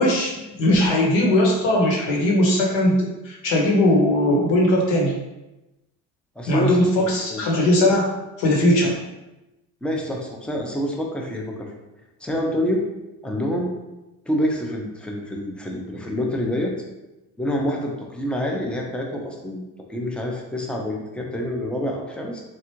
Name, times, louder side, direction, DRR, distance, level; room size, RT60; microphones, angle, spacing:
voice 1, 0.0-5.1 6.5-8.1 8.4-8.9, left 1 dB, 65° left, -1 dB, 1.1 m, -19 dB
voice 2, 6.4-7.4 7.9-8.0 9.8-11.7 12.2-12.8 13.2-13.7 14.3-16.7 17.4-19.6 19.9-22.4, equal, ahead, 0 dB, 0.5 m, -27 dB
3.4 x 2.4 x 2.9 m, 1.0 s
hypercardioid pair, 65°, 47 cm